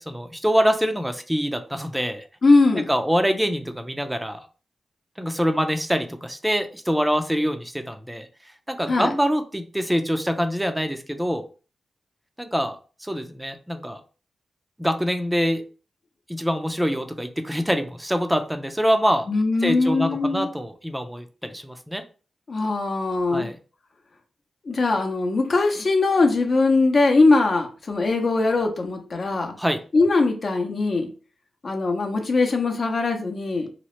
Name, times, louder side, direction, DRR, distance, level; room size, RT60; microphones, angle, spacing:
voice 1, 0.0-2.2 2.8-4.5 5.2-8.3 8.7-11.4 12.4-14.0 14.8-15.6 16.3-19.3 19.6-22.0 23.3-23.6 29.6-29.8, equal, 5° right, 7 dB, 0.5 m, -25 dB
voice 2, 2.4-2.9 8.9-9.1 19.3-20.5 22.5-23.5 24.6-29.5 29.9-31.1 31.6-33.7, left 3 dB, 55° left, 3 dB, 0.7 m, -21 dB
2.9 x 2.0 x 3.0 m, 0.36 s
cardioid pair, 60°, 0 cm